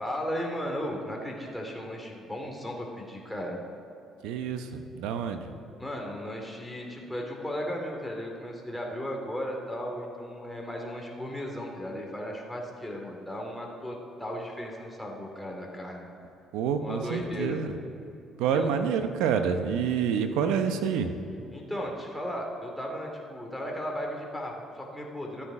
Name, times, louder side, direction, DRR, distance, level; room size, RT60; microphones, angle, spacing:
voice 1, 0.0-3.6 5.8-16.1 16.8-17.6 18.5-18.7 21.5-25.4, equal, 5° left, -1 dB, 2.5 m, -35 dB
voice 2, 4.2-5.5 16.5-17.7 18.4-21.1, right 7 dB, 85° right, 8 dB, 0.8 m, -28 dB
13.0 x 8.7 x 4.9 m, 2.8 s
supercardioid pair, 80°, 0 cm